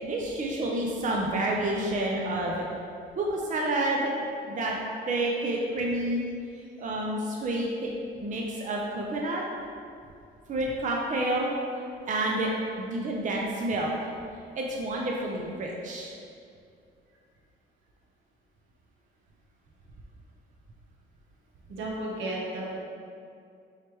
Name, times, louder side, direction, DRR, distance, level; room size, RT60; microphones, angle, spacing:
voice 1, 0.0-2.6 3.2-4.1 4.5-4.7 5.1-6.2 6.8-7.9 8.2-9.4 10.5-11.5 12.1-12.5 12.8-13.9 14.5-16.1, right 1 dB, 40° right, -2 dB, 0.5 m, -29 dB
voice 2, 21.7-22.8, right 1 dB, 80° right, -3 dB, 0.9 m, -33 dB
4.8 x 3.2 x 3.0 m, 2.4 s
cardioid pair, 90°, 20 cm